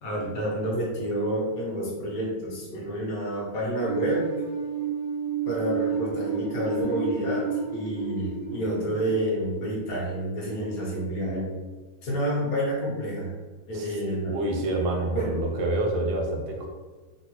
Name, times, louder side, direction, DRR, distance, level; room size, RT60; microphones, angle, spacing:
voice 1, 0.0-4.3 5.4-11.5 12.0-13.3 13.7-14.4 15.1-15.4, right 1 dB, 60° left, -4 dB, 1.2 m, -29 dB
sound 1, 3.8-10.7, right 5 dB, 40° left, 0.9 m, -31 dB
voice 2, 14.2-16.7, right 2 dB, 85° right, 0 dB, 1.3 m, -27 dB
3.7 x 2.0 x 2.9 m, 1.3 s
omnidirectional pair, 2.0 m